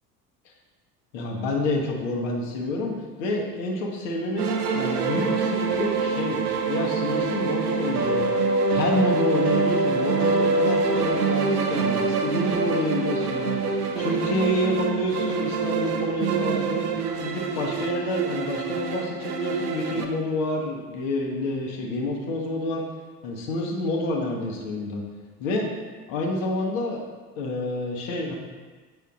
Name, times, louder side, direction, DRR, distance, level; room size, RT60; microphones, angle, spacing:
voice 1, 1.1-2.9 3.2-4.5 4.7-6.4 6.7-8.4 8.7-16.8 17.2-22.8 23.2-25.0 25.4-25.7 26.1-27.0 27.4-28.4, left 2 dB, 55° left, 0 dB, 1.2 m, -28 dB
sound 1, 4.4-20.1, right 4 dB, 75° right, 0.7 m, -25 dB
7.8 x 5.5 x 2.5 m, 1.3 s
figure-of-eight pair, 65°, 47 cm